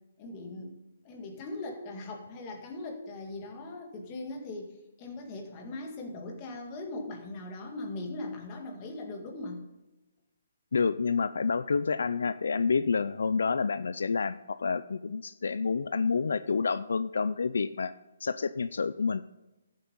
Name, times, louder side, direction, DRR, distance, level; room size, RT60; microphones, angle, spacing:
voice 1, 0.2-0.8 1.0-4.7 5.0-9.6, left 2 dB, 20° left, 2 dB, 1.9 m, -40 dB
voice 2, 10.7-17.9 18.2-19.2, left 5 dB, 75° left, 14 dB, 0.5 m, -28 dB
13.5 x 7.6 x 5.4 m, 1.0 s
hypercardioid pair, 170°, 0 cm